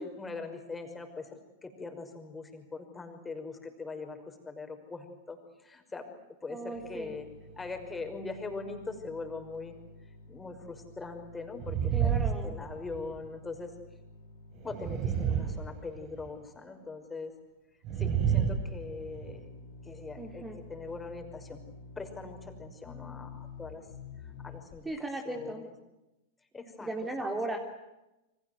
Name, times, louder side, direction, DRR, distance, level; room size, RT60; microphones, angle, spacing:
voice 1, 0.0-6.1 6.4-7.3 7.6-9.7 10.3-13.7 14.6-17.3 18.0-19.5 19.8-20.4 20.7-21.6 22.0-23.8 24.4-25.7 26.5-26.9, left 4 dB, 15° left, 5 dB, 5.8 m, -41 dB
voice 2, 6.5-7.1 11.9-12.6 20.2-20.6 24.9-25.7 26.8-27.6, right 2 dB, 10° right, 3 dB, 3.5 m, -36 dB
sound 1, 6.7-15.7 16.4-16.5 16.8-16.9 18.1-24.9 25.3-25.5, left 4 dB, 60° left, 6.2 m, -50 dB
sound 2, 11.6-13.2 14.6-16.3 17.8-19.4, right 8 dB, 40° right, 4.0 m, -30 dB
29.5 x 25.0 x 8.0 m, 0.98 s
hypercardioid pair, 100°, 0 cm